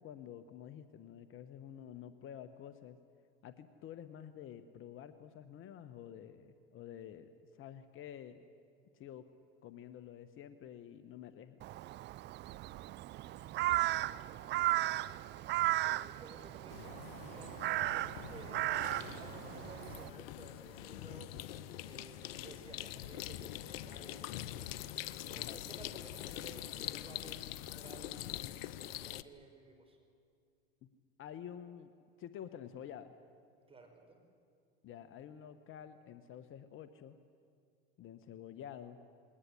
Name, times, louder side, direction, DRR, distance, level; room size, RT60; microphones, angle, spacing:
voice 1, 0.0-3.0 3.4-8.4 8.9-9.3 9.6-11.6 25.4-25.6 30.8-30.9 31.2-31.9 32.2-33.1 34.8-37.2 38.0-39.0, left 9 dB, 45° left, 11 dB, 1.2 m, -49 dB
Crow, 11.6-20.1, right 16 dB, 35° right, 0.5 m, -36 dB
voice 2, 15.8-18.7 19.1-21.3 21.8-30.0 33.7-34.2, right 3 dB, 20° right, 4 dB, 4.9 m, -56 dB
sound 1, 16.7-29.2, left 13 dB, 75° left, 0.8 m, -44 dB
20.5 x 18.5 x 10.0 m, 2.3 s
hypercardioid pair, 100°, 30 cm